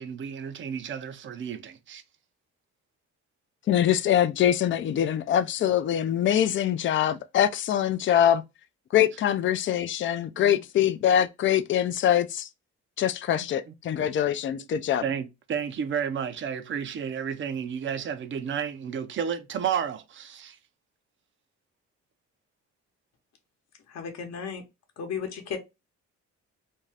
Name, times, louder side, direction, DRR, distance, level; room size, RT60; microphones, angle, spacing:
voice 1, 0.0-2.0 10.4-10.5 13.7-13.8 15.0-20.6, right 7 dB, 40° right, 0.5 m, -32 dB
voice 2, 3.7-8.4 8.9-12.5 13.0-15.0, left 10 dB, 40° left, 0.4 m, -24 dB
voice 3, 23.9-24.6 25.0-25.6, left 6 dB, 60° left, 0.9 m, -34 dB
2.6 x 2.3 x 3.2 m
cardioid pair, 90°, 30 cm